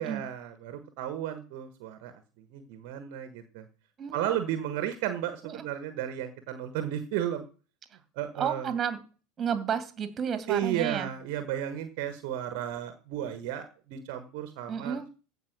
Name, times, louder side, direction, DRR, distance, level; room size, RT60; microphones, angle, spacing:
voice 1, 0.0-3.7 4.1-7.5 8.1-8.7 10.5-15.1, right 11 dB, 55° right, 10 dB, 1.4 m, -33 dB
voice 2, 4.0-4.3 5.4-5.6 8.4-9.0 9.4-11.1 14.7-15.1, right 7 dB, 30° right, 11 dB, 2.4 m, -31 dB
15.5 x 5.8 x 6.1 m, 0.36 s
figure-of-eight pair, 80°, 0 cm